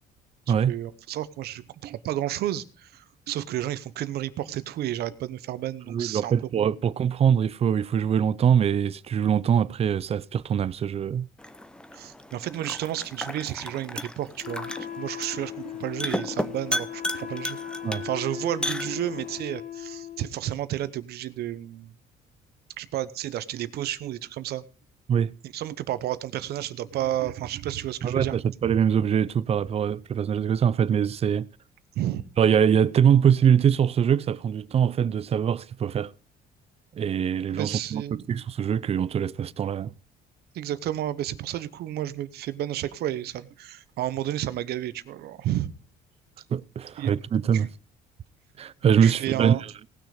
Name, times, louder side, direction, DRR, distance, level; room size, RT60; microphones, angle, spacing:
voice 1, 0.5-6.7 11.9-17.6 18.0-21.9 22.8-24.6 25.5-28.3 31.9-32.3 37.5-38.3 40.5-45.7 47.0-47.1 47.5-47.7 49.0-49.6, right 13 dB, 70° right, 0.9 m, -31 dB
voice 2, 5.9-11.3 17.8-18.1 25.1-25.3 28.0-31.5 32.4-36.1 37.0-38.0 38.3-39.9 46.5-47.7 48.6-49.6, right 8 dB, 35° right, 0.5 m, -23 dB
sound 1, 11.4-19.4, left 1 dB, 5° left, 0.8 m, -35 dB
Wind instrument woodwind instrument, 14.4-20.3, left 9 dB, 45° left, 1.3 m, -37 dB
18.5 x 6.3 x 5.0 m
cardioid pair, 110°, 17 cm